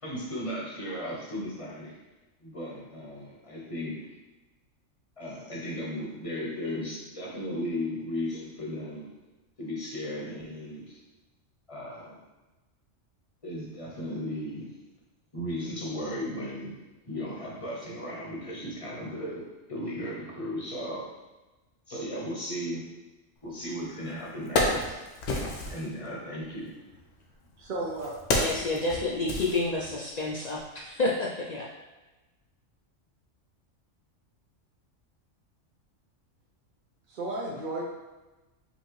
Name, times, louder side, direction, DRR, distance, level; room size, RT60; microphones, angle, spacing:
voice 1, 0.0-2.0 2.4-4.1 5.2-9.1 9.6-11.0 11.7-12.2 13.4-14.7 15.3-16.8 17.0-21.1 21.9-22.9 23.4-25.0 25.7-26.7, equal, 30° left, -3 dB, 0.8 m, -36 dB
Wood, 23.7-23.8 24.2-25.9 26.9-30.2 30.5-30.6, left 2 dB, 80° left, 1.1 m, -30 dB
voice 2, 27.6-28.1 37.1-37.8, right 2 dB, 55° right, -4 dB, 0.6 m, -33 dB
voice 3, 28.3-31.7, left 2 dB, 65° left, -4 dB, 0.4 m, -29 dB
5.2 x 2.7 x 3.1 m, 1.1 s
omnidirectional pair, 1.3 m